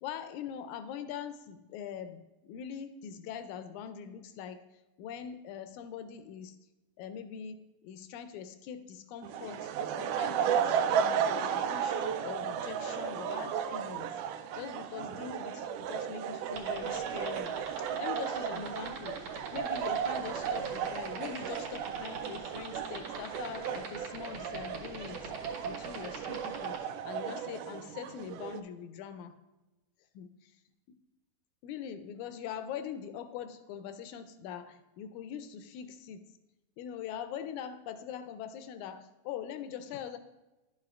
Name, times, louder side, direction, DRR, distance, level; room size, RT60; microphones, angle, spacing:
voice 1, 0.0-4.6 5.0-6.6 7.0-14.1 14.5-19.2 19.5-29.3 30.2-30.5 31.6-36.3 36.8-40.2, left 8 dB, 80° left, 10 dB, 1.9 m, -43 dB
sound 1, 9.2-28.6, right 8 dB, 85° right, 2.0 m, -34 dB
sound 2, 16.5-26.8, right 6 dB, 60° right, 2.1 m, -41 dB
11.0 x 7.5 x 2.4 m, 1.1 s
omnidirectional pair, 3.6 m